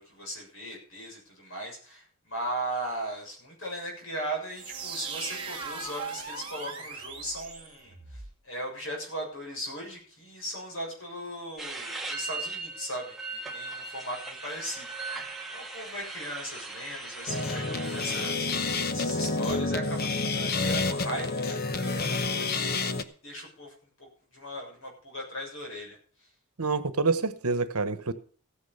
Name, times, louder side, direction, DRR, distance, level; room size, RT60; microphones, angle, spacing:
voice 1, 0.0-26.0, right 1 dB, 60° left, 7.0 m, -38 dB
sound 1, 4.5-8.3, right 5 dB, 25° right, 3.2 m, -39 dB
sound 2, 11.6-18.3, right 3 dB, ahead, 1.8 m, -39 dB
sound 3, 17.3-23.0, left 3 dB, 45° left, 0.9 m, -29 dB
voice 2, 26.6-28.1, right 4 dB, 80° right, 1.2 m, -27 dB
15.5 x 10.0 x 5.6 m
head